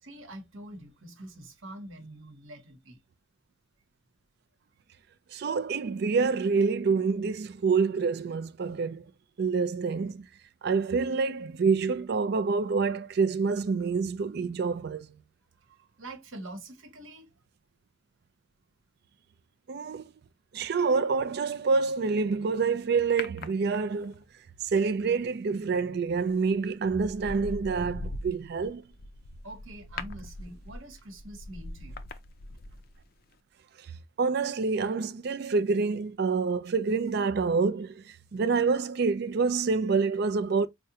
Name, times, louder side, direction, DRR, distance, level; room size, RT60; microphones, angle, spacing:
voice 1, 0.0-3.0 16.0-17.3 29.4-32.0, right 1 dB, 70° right, 1.0 m, -45 dB
voice 2, 5.3-9.0 9.4-10.3 10.6-15.2 19.7-20.1 20.5-24.2 24.6-28.8 34.2-40.7, right 4 dB, 50° right, 0.4 m, -27 dB
sound 1, 23.2-24.2 26.1-26.4 26.8-33.0 33.3-33.4, left 2 dB, 45° left, 0.4 m, -41 dB
4.8 x 2.1 x 2.7 m
head